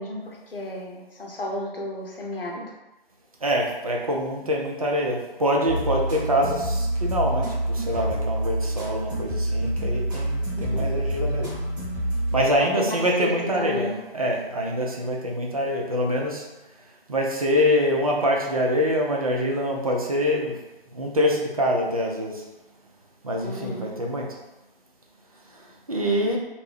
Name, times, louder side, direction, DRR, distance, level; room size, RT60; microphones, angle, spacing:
voice 1, 0.0-2.6 10.5-10.9 12.6-14.0 23.4-23.9, left 1 dB, 70° left, -1 dB, 0.8 m, -33 dB
voice 2, 3.4-7.5 7.9-11.5 12.3-16.4 17.1-20.5 21.0-22.3 23.2-24.2 25.9-26.4, equal, 40° right, -1 dB, 0.4 m, -25 dB
sound 1, 5.7-12.5, right 1 dB, 15° right, 1.1 m, -27 dB
2.6 x 2.0 x 3.2 m, 1.0 s
figure-of-eight pair, 145°, 29 cm